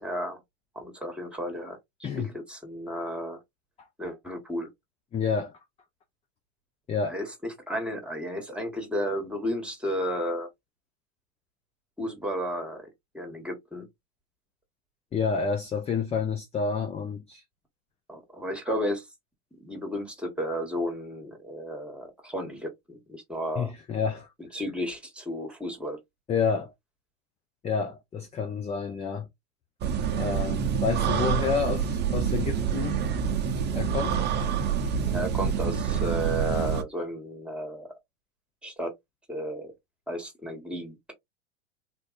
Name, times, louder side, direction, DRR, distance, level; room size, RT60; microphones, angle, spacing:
voice 1, 0.0-0.4 0.7-3.4 4.0-4.7 7.1-10.5 12.0-12.9 13.1-13.9 18.1-19.1 19.6-23.7 24.5-26.0 35.0-37.9 38.6-38.9 39.3-39.7 40.1-41.0, equal, 5° right, 1.4 m, -33 dB
voice 2, 5.1-5.5 6.9-7.2 15.1-17.4 23.6-24.3 26.3-26.7 27.6-29.3 30.2-33.1 33.7-34.2, left 6 dB, 20° left, 0.5 m, -29 dB
sound 1, 29.8-36.8, right 7 dB, 30° right, 0.7 m, -27 dB
3.6 x 2.5 x 2.5 m
hypercardioid pair, 100°, 37 cm